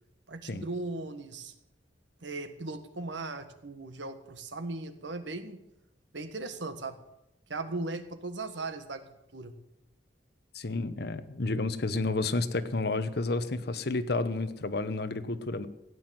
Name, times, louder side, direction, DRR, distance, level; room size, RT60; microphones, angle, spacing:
voice 1, 0.3-1.5 2.2-5.6 6.1-7.0 7.5-9.5, right 2 dB, 80° right, 9 dB, 1.5 m, -38 dB
voice 2, 10.5-15.7, left 3 dB, 60° left, 12 dB, 1.0 m, -31 dB
16.0 x 9.4 x 7.7 m, 0.87 s
head